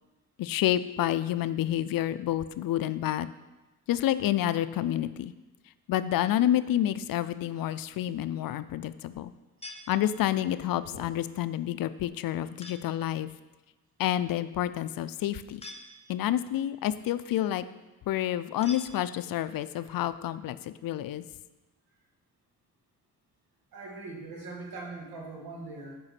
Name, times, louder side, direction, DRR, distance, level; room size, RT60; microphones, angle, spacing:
voice 1, 0.4-3.3 3.9-5.3 5.9-9.3 9.9-13.3 14.0-15.6 16.1-17.6 18.1-21.3, left 12 dB, 75° left, 14 dB, 0.5 m, -29 dB
sound 1, 9.6-10.6 12.6-13.1 15.6-16.4 18.6-19.5, left 2 dB, 15° left, 1.0 m, -47 dB
voice 2, 19.5-20.0 23.7-26.0, right 3 dB, 85° right, -1 dB, 2.1 m, -42 dB
7.8 x 5.4 x 5.9 m, 1.1 s
cardioid pair, 110°, 35 cm